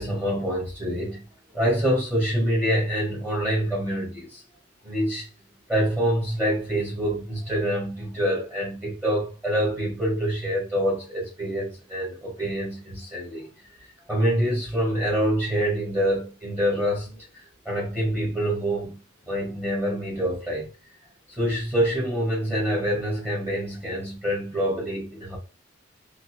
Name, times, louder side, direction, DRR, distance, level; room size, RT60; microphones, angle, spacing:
voice 1, 0.0-4.4 4.8-5.3 5.7-13.5 14.1-17.3 17.7-19.0 19.3-20.7 21.4-25.4, equal, 10° right, 1.9 m, -26 dB
3.9 x 2.6 x 3.0 m
head